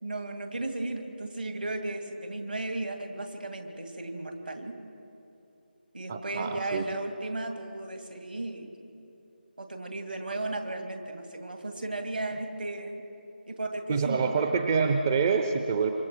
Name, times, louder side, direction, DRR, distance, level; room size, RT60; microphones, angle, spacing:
voice 1, 0.0-4.7 5.9-8.7 9.6-13.0 13.5-14.3, right 2 dB, 60° right, 5 dB, 2.5 m, -35 dB
voice 2, 6.1-6.9 13.9-15.9, right 5 dB, 20° right, 6 dB, 0.5 m, -26 dB
26.5 x 24.0 x 4.6 m, 2.8 s
figure-of-eight pair, 160°, 6 cm